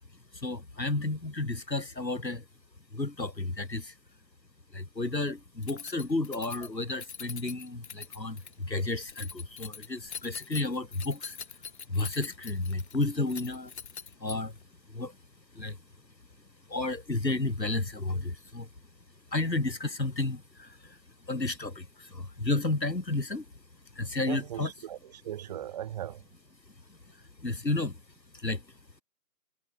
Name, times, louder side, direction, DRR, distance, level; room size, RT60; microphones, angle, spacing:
voice 1, 0.4-2.4 2.9-3.9 4.7-11.4 11.9-13.7 14.2-14.5 14.9-15.1 15.5-15.8 16.7-18.7 19.3-20.9 21.3-23.4 24.0-24.7 27.4-28.0 28.4-28.6, left 2 dB, 85° left, 6.2 m, -32 dB
Keys jangling, 5.6-14.6, left 7 dB, 40° left, 7.2 m, -43 dB
voice 2, 24.3-26.2, right 11 dB, 25° right, 3.7 m, -38 dB
figure-of-eight pair, 155°, 49 cm